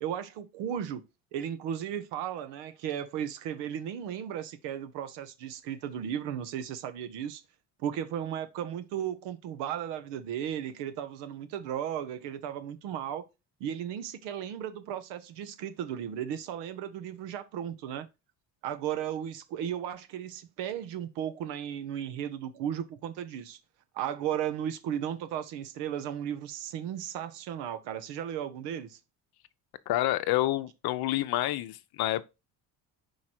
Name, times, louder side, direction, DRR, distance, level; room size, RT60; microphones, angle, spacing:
voice 1, 0.0-1.0 1.3-7.4 7.8-13.3 13.6-18.1 18.6-23.6 23.9-29.0, right 9 dB, 90° right, 0.9 m, -35 dB
voice 2, 29.9-32.2, left 15 dB, 65° left, 0.7 m, -28 dB
4.8 x 4.7 x 4.4 m
cardioid pair, 95°, 40 cm